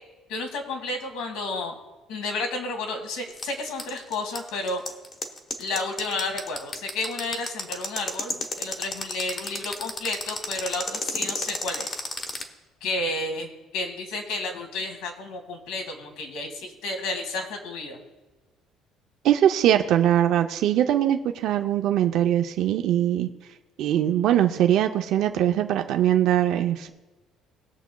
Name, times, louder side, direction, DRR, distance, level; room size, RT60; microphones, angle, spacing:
voice 1, 0.3-1.8 2.1-4.8 5.6-11.9 12.8-18.0, left 2 dB, 85° left, 4 dB, 1.7 m, -31 dB
sound 1, 3.3-12.4, left 3 dB, 25° left, 1.0 m, -31 dB
voice 2, 19.2-23.3 23.8-26.9, right 11 dB, 60° right, 6 dB, 0.5 m, -21 dB
21.0 x 7.1 x 2.3 m, 1.2 s
cardioid pair, 165°, 0 cm